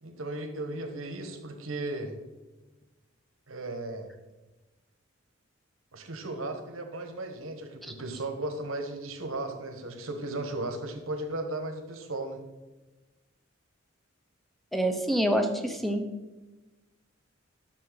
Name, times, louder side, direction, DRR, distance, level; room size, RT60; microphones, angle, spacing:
voice 1, 0.0-2.2 3.5-4.1 5.9-12.4, right 2 dB, 85° right, 5 dB, 1.4 m, -36 dB
voice 2, 14.7-16.0, equal, ahead, 5 dB, 0.9 m, -27 dB
11.0 x 6.9 x 4.0 m, 1.1 s
head